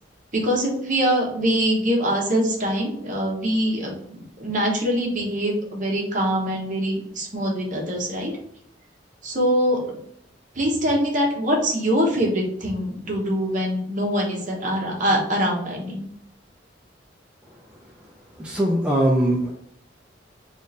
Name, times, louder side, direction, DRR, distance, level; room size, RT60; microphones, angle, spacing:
voice 1, 0.3-8.3 9.2-10.0 10.6-16.0, equal, 45° right, -1 dB, 1.0 m, -23 dB
voice 2, 18.4-19.5, right 1 dB, 5° right, -2 dB, 0.4 m, -21 dB
3.6 x 2.5 x 4.0 m, 0.68 s
head